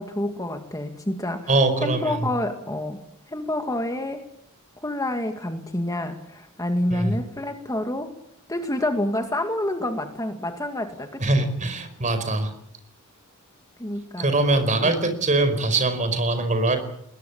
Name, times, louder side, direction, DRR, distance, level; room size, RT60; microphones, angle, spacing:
voice 1, 0.0-3.0 3.3-4.2 4.8-8.1 8.5-11.5 13.8-14.3 14.8-14.9, left 1 dB, 15° left, 5 dB, 2.0 m, -28 dB
voice 2, 1.5-2.2 6.9-7.2 11.2-12.5 14.2-16.8, right 2 dB, 35° right, 10 dB, 4.9 m, -22 dB
21.5 x 20.0 x 8.7 m, 0.73 s
head